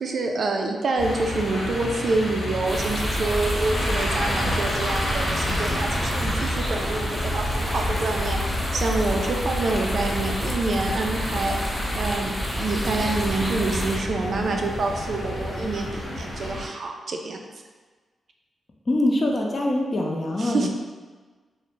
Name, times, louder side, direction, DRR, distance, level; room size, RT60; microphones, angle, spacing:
voice 1, 0.0-17.4 20.4-20.7, right 3 dB, 65° right, 2 dB, 0.3 m, -27 dB
sound 1, 1.0-16.6, left 1 dB, 85° left, 0.8 m, -30 dB
sound 2, 2.7-14.0, equal, ahead, 0.8 m, -29 dB
voice 2, 18.9-20.7, left 1 dB, 45° left, 0 dB, 0.5 m, -23 dB
2.5 x 2.0 x 3.0 m, 1.4 s
supercardioid pair, 45°, 0 cm